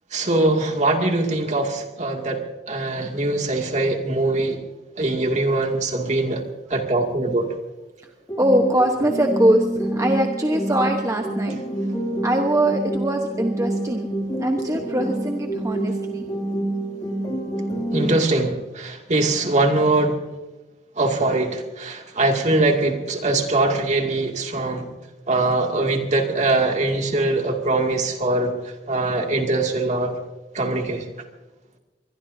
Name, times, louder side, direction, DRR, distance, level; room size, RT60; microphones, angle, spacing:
voice 1, 0.1-2.4 2.7-4.6 5.0-6.4 6.7-7.5 17.9-20.2 21.0-24.9 25.3-28.5 28.9-30.2 30.5-31.1, right 2 dB, 45° right, 2 dB, 2.4 m, -22 dB
sound 1, 8.3-18.3, right 1 dB, 25° left, 2.8 m, -27 dB
voice 2, 8.4-11.6 12.2-14.1 14.4-16.2, right 1 dB, 20° right, 3 dB, 1.1 m, -22 dB
24.0 x 21.5 x 2.8 m, 1.1 s
head